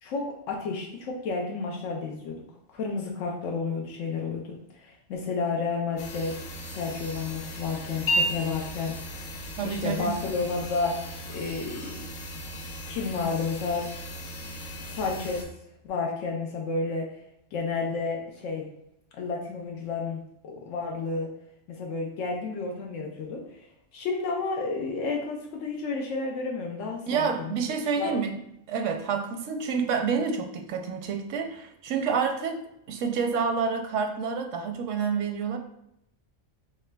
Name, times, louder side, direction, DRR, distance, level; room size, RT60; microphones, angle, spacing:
voice 1, 0.0-2.4 2.7-4.4 4.7-6.4 6.6-9.3 9.6-11.0 11.3-12.0 12.9-13.9 14.9-15.5 15.8-17.1 17.5-18.6 19.2-21.3 21.7-23.4 23.9-27.6 28.0-28.2, left 4 dB, 85° left, 0 dB, 1.0 m, -31 dB
sound 1, 6.0-15.4, equal, 60° left, 0.5 m, -35 dB
voice 2, 9.6-10.1 27.1-28.4 28.7-35.6, right 6 dB, 85° right, 4 dB, 0.9 m, -28 dB
4.8 x 3.1 x 2.2 m, 0.79 s
omnidirectional pair, 1.3 m